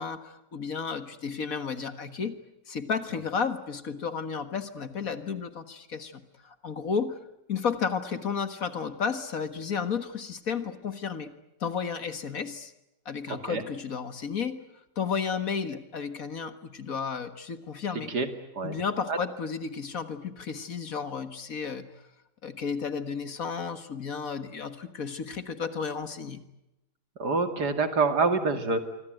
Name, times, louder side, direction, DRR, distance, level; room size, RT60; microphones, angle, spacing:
voice 1, 0.0-2.4 2.7-7.2 7.5-11.3 11.6-12.7 13.1-14.6 15.0-18.1 18.6-21.9 22.4-26.4, left 6 dB, 55° left, 10 dB, 2.0 m, -32 dB
voice 2, 13.3-13.6 18.1-18.3 18.5-18.8 19.1-19.2 27.2-28.8, right 4 dB, 70° right, 8 dB, 3.0 m, -26 dB
26.0 x 25.0 x 9.1 m, 0.91 s
omnidirectional pair, 1.8 m